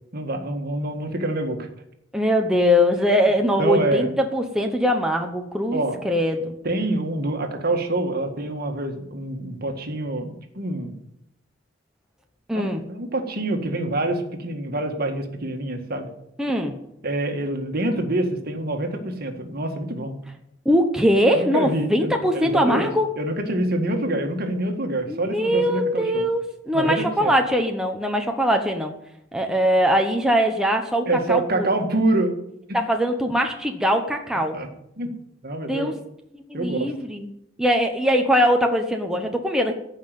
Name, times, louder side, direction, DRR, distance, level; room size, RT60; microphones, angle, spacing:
voice 1, 0.1-1.7 3.6-4.1 5.7-6.0 6.6-10.9 12.5-16.1 17.0-20.2 21.3-26.2 26.7-27.3 31.1-32.3 32.7-32.8 34.5-34.7 35.0-35.1 35.4-36.0 36.5-36.9, right 1 dB, 50° right, 5 dB, 1.8 m, -26 dB
voice 2, 2.1-5.8 6.0-6.5 12.5-12.8 16.4-16.7 20.6-23.1 25.1-28.9 29.3-31.7 32.7-34.6 35.7-35.9 36.5-37.3 37.6-39.7, equal, 5° right, 3 dB, 0.9 m, -21 dB
14.5 x 5.7 x 9.2 m, 0.79 s
head